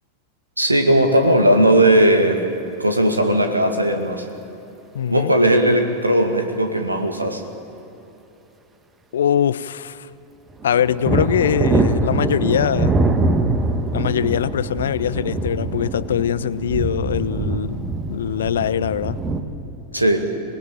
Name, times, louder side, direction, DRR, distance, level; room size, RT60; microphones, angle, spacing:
voice 1, 0.6-2.4 2.8-4.3 5.1-7.4 19.9-20.2, right 1 dB, 85° right, 2.1 m, -17 dB
voice 2, 4.9-5.3 9.1-10.1 10.6-13.0 13.9-19.2, left 9 dB, 65° left, 0.6 m, -22 dB
sound 1, 10.6-19.4, right 3 dB, 20° right, 1.7 m, -23 dB
25.0 x 20.0 x 9.0 m
figure-of-eight pair, 90°, 0 cm